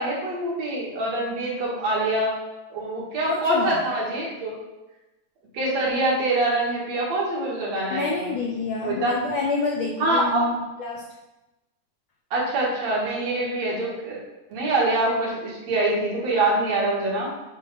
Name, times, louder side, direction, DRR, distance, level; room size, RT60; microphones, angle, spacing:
voice 1, 0.0-2.3 2.7-4.6 5.5-8.3 8.8-9.2 10.0-10.5 12.3-14.2 14.5-17.3, right 2 dB, 65° right, -5 dB, 3.2 m, -24 dB
voice 2, 3.2-3.9 7.9-11.0, left 4 dB, 75° left, -1 dB, 1.1 m, -28 dB
9.4 x 3.6 x 6.4 m, 1.0 s
omnidirectional pair, 3.4 m